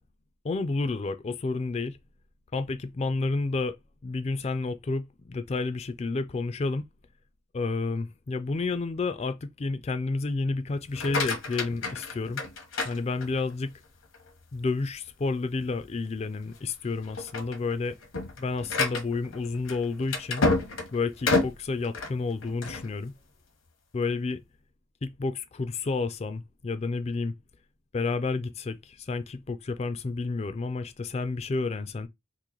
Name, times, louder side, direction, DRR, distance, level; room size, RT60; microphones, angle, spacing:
voice 1, 0.4-2.0 2.5-6.9 7.5-12.4 12.8-13.7 14.5-18.0 18.4-20.4 20.9-23.1 23.9-24.4 25.0-27.3 27.9-32.1, left 3 dB, 30° left, 0.3 m, -30 dB
sound 1, 10.8-13.6 14.1-14.6 15.0-15.1 15.6-15.7 16.4-16.7 17.0-22.9, left 3 dB, 75° left, 1.0 m, -30 dB
3.0 x 2.5 x 3.7 m
head